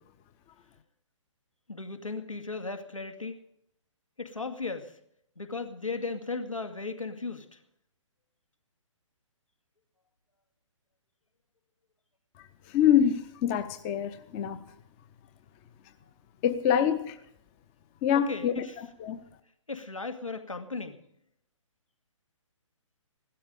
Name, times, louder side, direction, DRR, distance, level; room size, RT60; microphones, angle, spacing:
voice 1, 1.7-3.4 4.2-5.0 5.4-7.6 18.1-18.8 19.7-21.0, left 3 dB, 80° left, 2.2 m, -36 dB
voice 2, 12.7-14.6 16.4-17.2 18.0-18.6 19.0-19.2, left 9 dB, 20° left, 0.7 m, -25 dB
16.5 x 13.0 x 5.1 m
figure-of-eight pair, 130°, 17 cm